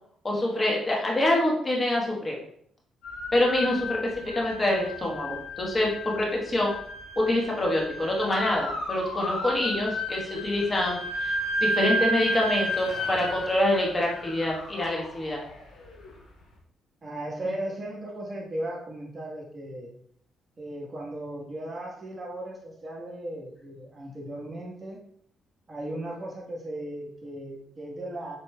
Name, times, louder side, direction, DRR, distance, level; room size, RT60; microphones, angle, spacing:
voice 1, 0.2-2.4 3.3-6.7 7.2-11.3 11.6-15.4, left 1 dB, 25° left, -1 dB, 1.2 m, -26 dB
sound 1, 3.0-16.1, equal, 85° left, 1.2 m, -33 dB
voice 2, 17.0-19.9 20.6-25.0 25.7-28.4, right 1 dB, 35° right, -1 dB, 1.2 m, -36 dB
7.2 x 3.1 x 2.2 m, 0.64 s
cardioid pair, 90°, 0 cm